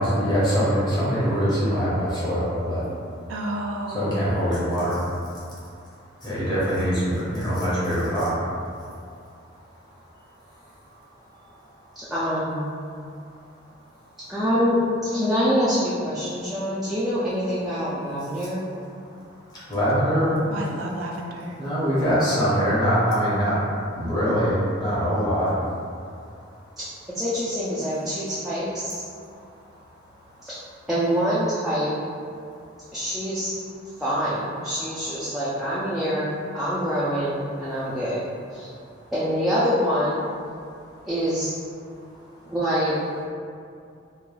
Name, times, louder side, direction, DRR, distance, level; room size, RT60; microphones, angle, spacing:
voice 1, 0.0-2.8 3.9-5.0 6.2-8.3 19.7-20.3 21.6-23.6 23.9-24.5 24.8-25.5, equal, 20° left, -10 dB, 0.8 m, -23 dB
voice 2, 3.3-4.4 20.5-21.5, right 1 dB, 80° right, 0 dB, 0.3 m, -31 dB
voice 3, 12.0-12.7 14.3-18.6 26.8-26.9 27.1-29.0 30.9-31.9 32.9-33.5 34.0-38.2 38.5-38.7 39.1-40.3 41.0-41.5 42.5-43.0, equal, ahead, -11 dB, 0.3 m, -25 dB
3.1 x 2.2 x 2.3 m, 2.4 s
head